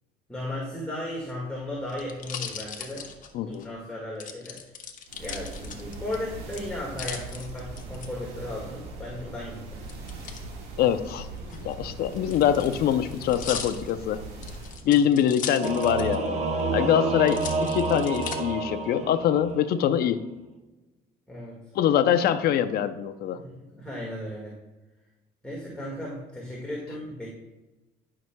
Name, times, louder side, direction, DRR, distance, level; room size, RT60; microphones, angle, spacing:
voice 1, 0.3-3.1 3.4-4.6 5.2-9.8 21.3-21.6 23.3-24.6 25.4-27.3, left 1 dB, 5° left, -5 dB, 1.8 m, -36 dB
sound 1, 1.1-3.7 4.2-6.2 6.5-8.1 9.9-10.4 11.4-16.3 16.6-16.7 17.2-18.4 19.0-19.5, left 7 dB, 50° left, 0.9 m, -39 dB
voice 2, 3.3-3.7 10.8-11.3 11.5-14.2 14.8-16.4 16.7-20.2 21.7-23.4, left 9 dB, 70° left, 11 dB, 0.6 m, -24 dB
sound 2, 5.1-14.9, right 3 dB, 85° right, 1.7 m, -40 dB
Singing / Musical instrument, 15.6-19.7, right 3 dB, 40° right, 1.0 m, -29 dB
12.0 x 6.0 x 2.2 m, 1.1 s
cardioid pair, 110°, 17 cm